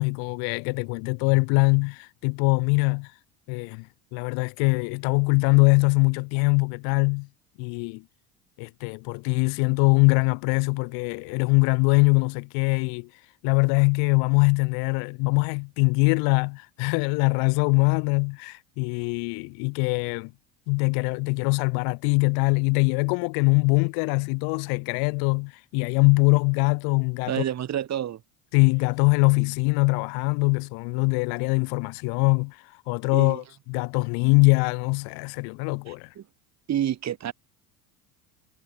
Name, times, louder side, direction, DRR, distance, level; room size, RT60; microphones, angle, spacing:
voice 1, 0.0-3.1 3.5-7.3 7.6-8.0 8.6-13.1 13.4-20.3 20.7-27.3 28.5-32.6 32.9-36.1, left 36 dB, 70° left, 0.6 m, -23 dB
voice 2, 27.3-28.2 33.1-33.4 35.9-36.2 36.7-37.3, right 10 dB, 45° right, 2.8 m, -29 dB
supercardioid pair, 90°, 38 cm